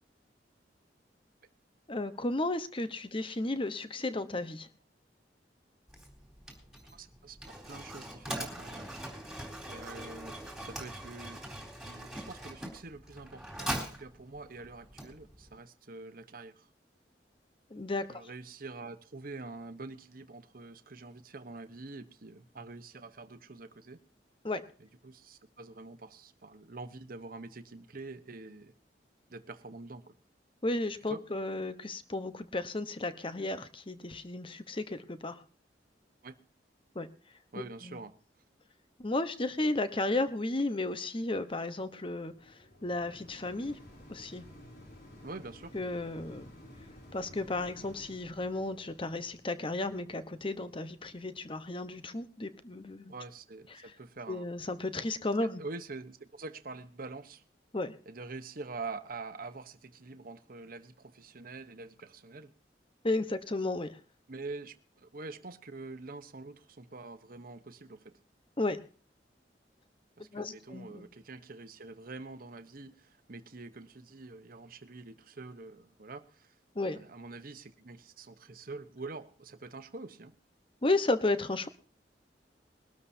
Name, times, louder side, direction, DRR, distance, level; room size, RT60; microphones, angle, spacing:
voice 1, 1.9-4.7 17.7-18.2 24.4-24.7 30.6-35.4 36.9-37.1 37.8-38.0 39.0-42.3 42.8-43.8 44.1-44.4 45.7-46.5 47.1-53.1 53.7-53.8 54.3-55.6 57.7-58.0 63.0-64.0 68.6-68.8 70.3-71.1 76.7-77.0 80.8-81.7, left 2 dB, 30° left, 1.0 m, -33 dB
Mechanisms, 5.9-15.6, right 1 dB, ahead, 3.9 m, -42 dB
voice 2, 6.9-9.0 9.6-10.3 10.6-11.4 11.8-16.7 18.1-24.0 24.8-28.7 29.3-30.1 31.1-31.2 36.2-36.4 37.5-38.1 45.2-45.7 53.1-54.5 55.4-57.4 58.1-62.5 64.3-68.1 70.2-76.5 76.9-80.3, right 3 dB, 55° right, 1.0 m, -45 dB
sound 1, 41.6-52.8 53.4-53.5, left 1 dB, 60° left, 3.8 m, -55 dB
22.0 x 12.5 x 2.8 m
head